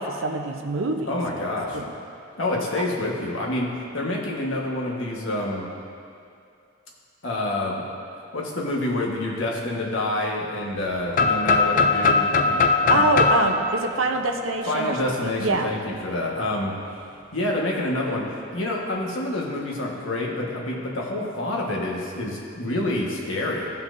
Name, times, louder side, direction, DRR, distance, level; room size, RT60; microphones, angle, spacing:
voice 1, 0.0-1.1 1.7-1.9 2.6-2.7 12.9-15.1 15.4-15.7, right 3 dB, 85° right, 4 dB, 0.7 m, -25 dB
voice 2, 1.1-1.8 2.3-5.7 7.2-7.8 8.3-12.6 12.9-13.1 14.7-16.7 17.3-23.7, left 1 dB, 75° left, -2 dB, 1.4 m, -27 dB
sound 1, 11.1-15.0, left 4 dB, 40° left, 0.4 m, -21 dB
15.5 x 5.8 x 2.6 m, 2.4 s
head